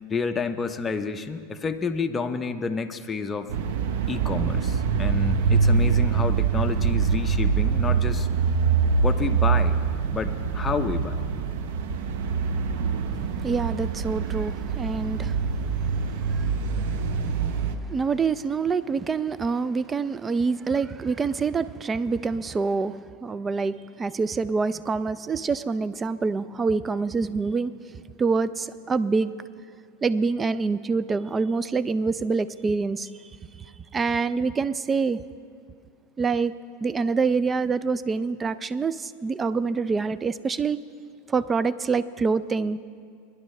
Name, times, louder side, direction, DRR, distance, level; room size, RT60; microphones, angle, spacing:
voice 1, 0.1-3.5 4.1-8.3 9.0-9.8 10.1-11.2, left 4 dB, 20° left, 7 dB, 0.6 m, -29 dB
sound 1, 3.5-17.8, right 5 dB, 65° right, 0.7 m, -24 dB
voice 2, 13.1-16.5 17.3-17.6 17.9-27.7 28.2-29.3 30.0-33.1 33.6-33.7 33.9-35.2 36.2-36.6 36.8-40.8 41.3-42.8, right 4 dB, 20° right, 16 dB, 0.3 m, -26 dB
21.0 x 11.0 x 3.2 m, 2.3 s
supercardioid pair, 125°, 0 cm